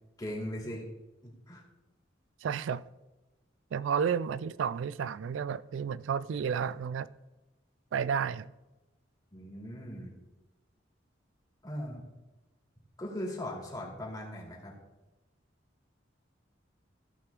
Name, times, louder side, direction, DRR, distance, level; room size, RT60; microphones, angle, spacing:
voice 1, 0.2-0.8 1.2-1.6 9.3-10.1 11.6-12.0 13.0-14.7, left 1 dB, 20° left, 2.6 m, -39 dB
voice 2, 2.4-2.8 3.7-7.1 7.9-8.5, right 7 dB, 85° right, 0.3 m, -31 dB
16.0 x 5.8 x 3.6 m
head